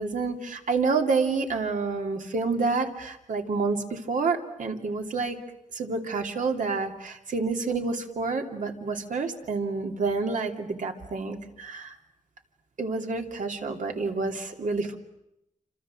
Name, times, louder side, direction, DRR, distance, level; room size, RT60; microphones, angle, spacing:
voice 1, 0.0-5.4 5.7-11.9 12.8-15.0, right 4 dB, 70° right, 3 dB, 2.9 m, -28 dB
28.5 x 26.0 x 7.6 m, 0.85 s
wide cardioid pair, 170°, 14 cm